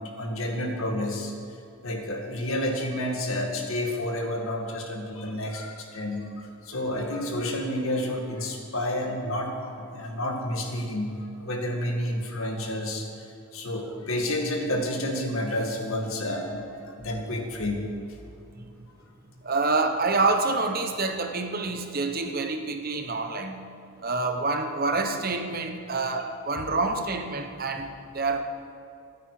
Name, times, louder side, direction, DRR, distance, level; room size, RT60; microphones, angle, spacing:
voice 1, 0.0-1.3 1.8-13.1 13.5-17.9 26.7-26.8, left 1 dB, 65° left, 2 dB, 2.2 m, -30 dB
voice 2, 19.4-23.6 24.0-28.4, right 3 dB, 40° right, 6 dB, 1.1 m, -27 dB
25.5 x 9.3 x 5.0 m, 2.6 s
head